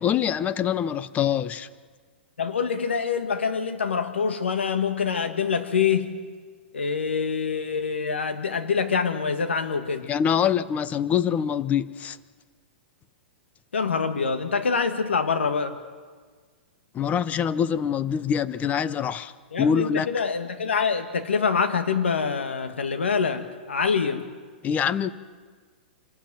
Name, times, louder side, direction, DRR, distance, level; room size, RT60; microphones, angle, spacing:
voice 1, 0.0-1.7 10.1-12.2 16.9-19.3 19.6-20.1 24.6-25.1, left 8 dB, 25° left, 15 dB, 0.8 m, -24 dB
voice 2, 2.4-6.1 6.7-10.1 13.7-15.8 19.5-24.2, left 5 dB, 90° left, 8 dB, 1.7 m, -25 dB
26.5 x 12.5 x 9.1 m, 1.5 s
hypercardioid pair, 125°, 6 cm